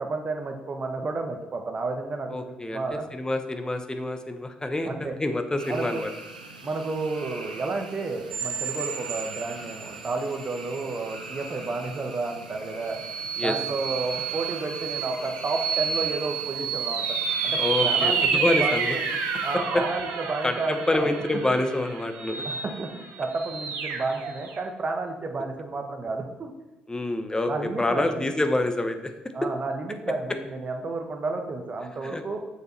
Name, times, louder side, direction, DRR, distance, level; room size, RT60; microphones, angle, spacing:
voice 1, 0.0-3.0 4.8-5.2 5.7-6.0 6.6-13.0 13.4-17.2 17.4-18.8 19.4-21.1 22.4-26.5 27.5-28.3 29.3-32.5, right 3 dB, 35° right, 4 dB, 1.4 m, -31 dB
voice 2, 2.3-6.1 13.4-13.5 17.6-19.0 19.5-19.8 20.4-22.4 26.9-27.5 27.8-29.1 32.0-32.2, left 2 dB, 15° left, 7 dB, 1.1 m, -27 dB
sound 1, 5.6-19.6, right 2 dB, 85° right, 0.7 m, -42 dB
sound 2, 8.3-10.3 10.8-10.9 12.9-24.6, right 6 dB, 65° right, 1.0 m, -29 dB
8.3 x 6.7 x 4.3 m, 1.1 s
figure-of-eight pair, 45°, 4 cm